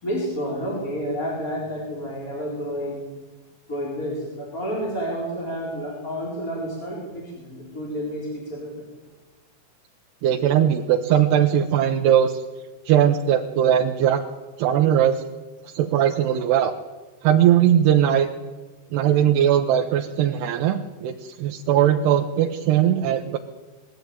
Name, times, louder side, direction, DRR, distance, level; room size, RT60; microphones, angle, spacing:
voice 1, 0.0-3.0 3.7-8.9, equal, 20° left, -4 dB, 4.8 m, -30 dB
voice 2, 10.2-12.4 12.9-14.2 14.6-15.2 15.7-16.7 17.2-18.3 18.9-23.4, right 10 dB, 85° right, 3 dB, 3.1 m, -19 dB
22.5 x 14.5 x 9.4 m, 1.2 s
omnidirectional pair, 4.6 m